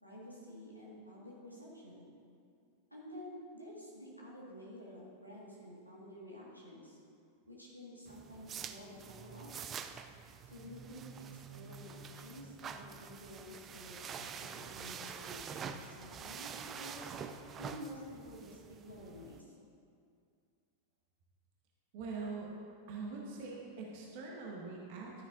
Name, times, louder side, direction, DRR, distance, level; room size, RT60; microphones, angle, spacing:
voice 1, 0.0-2.1 2.9-7.0 7.5-9.5 10.5-15.4 15.8-17.0 17.5-19.5, equal, 90° right, -5 dB, 2.0 m, -50 dB
sound 1, 8.1-19.4, right 6 dB, 25° right, 0.4 m, -46 dB
voice 2, 21.9-22.5 22.9-25.2, right 4 dB, 50° right, -2 dB, 1.4 m, -43 dB
12.0 x 9.9 x 2.7 m, 2.4 s
figure-of-eight pair, 90°, 0 cm